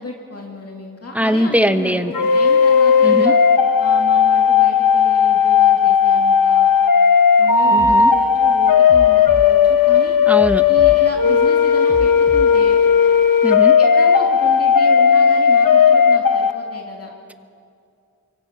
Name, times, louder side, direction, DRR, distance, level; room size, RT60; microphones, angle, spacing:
voice 1, 0.0-3.4 3.8-6.7 7.4-10.1 10.6-12.8 13.8-17.1, left 2 dB, 45° left, 0 dB, 2.4 m, -33 dB
voice 2, 1.1-2.1 3.0-3.3 7.7-8.1 10.3-10.6 13.4-13.8, equal, 5° right, 9 dB, 1.0 m, -20 dB
sound 1, 2.1-16.5, left 6 dB, 80° left, 1.1 m, -14 dB
sound 2, 7.8-8.0 8.9-9.5 10.4-11.0 11.9-12.5, left 1 dB, 15° left, 1.3 m, -30 dB
24.0 x 23.5 x 5.9 m, 2.3 s
wide cardioid pair, 85°, 33 cm